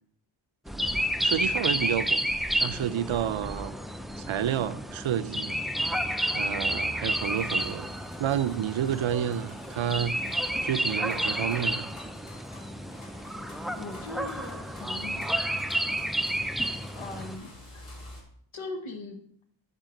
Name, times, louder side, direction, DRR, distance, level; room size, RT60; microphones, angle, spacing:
sound 1, 0.7-17.4, right 1 dB, ahead, 0.4 m, -31 dB
voice 1, 1.2-2.2 2.6-3.8 4.2-5.6 6.3-7.9 8.2-10.2 10.6-11.9, right 9 dB, 75° right, 0.6 m, -30 dB
sound 2, 7.2-18.2, left 1 dB, 45° left, 3.1 m, -50 dB
voice 2, 13.8-15.2 16.9-17.9 18.5-19.2, left 2 dB, 80° left, 1.3 m, -40 dB
9.1 x 3.7 x 6.4 m
wide cardioid pair, 50°, 48 cm